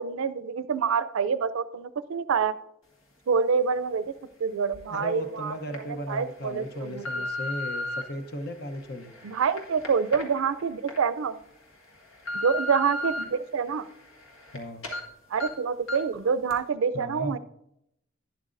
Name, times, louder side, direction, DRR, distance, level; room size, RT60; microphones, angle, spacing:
voice 1, 0.0-2.5 3.3-4.0 4.4-5.5 6.1-7.0 9.2-11.4 12.3-13.8 15.3-17.4, right 6 dB, 85° right, 15 dB, 0.4 m, -26 dB
sound 1, 4.7-4.8 5.5-5.8 6.4-8.0 8.7-11.0 11.4-11.5 11.9-13.2 13.7-14.6 14.8-15.0 15.4-15.5 15.9-16.1 16.5-16.6, left 2 dB, 85° left, 1.5 m, -35 dB
voice 2, 4.9-9.1 14.5-14.9 16.9-17.4, left 1 dB, 50° left, 7 dB, 0.8 m, -36 dB
11.5 x 10.5 x 2.6 m, 0.81 s
head